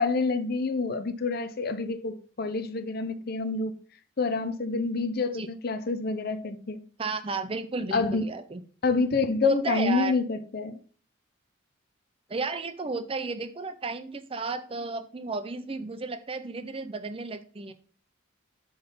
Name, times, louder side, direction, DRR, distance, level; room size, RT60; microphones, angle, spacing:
voice 1, 0.0-3.7 4.2-6.8 7.9-8.2 8.8-10.8, left 4 dB, 50° left, 0.6 m, -28 dB
voice 2, 7.0-8.6 9.4-10.2 12.3-17.7, right 3 dB, 25° right, 0.5 m, -33 dB
7.0 x 3.9 x 5.3 m
head